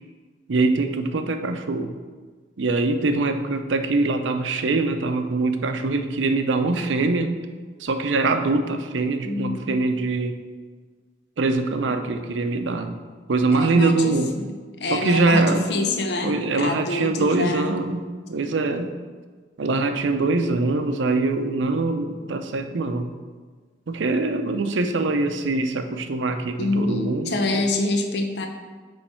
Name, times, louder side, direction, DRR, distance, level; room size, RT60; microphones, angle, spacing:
voice 1, 0.5-1.9 2.6-7.3 7.8-10.4 11.4-13.0 13.3-14.3 14.8-15.7 16.2-18.0 18.3-18.9 19.6-23.1 23.9-27.6, right 3 dB, 85° right, 7 dB, 0.5 m, -23 dB
voice 2, 9.2-9.7 13.5-14.5 14.8-17.8 26.6-28.5, left 2 dB, 65° left, 4 dB, 0.6 m, -26 dB
8.6 x 3.2 x 4.4 m, 1.5 s
head